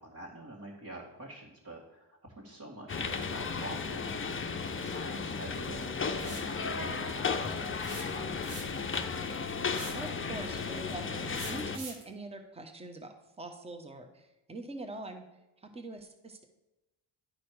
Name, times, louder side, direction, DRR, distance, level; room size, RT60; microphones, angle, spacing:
voice 1, 0.0-8.4, right 1 dB, 40° right, -4 dB, 2.1 m, -47 dB
sound 1, 2.9-11.8, left 5 dB, 25° left, 0.7 m, -34 dB
sound 2, 6.2-6.5 7.8-8.9 9.7-10.1 11.4-12.1, right 3 dB, 85° right, 1.7 m, -44 dB
voice 2, 9.9-15.3 15.6-16.5, right 2 dB, 10° right, 5 dB, 1.1 m, -43 dB
11.5 x 4.2 x 4.8 m, 1.0 s
cardioid pair, 65°, 50 cm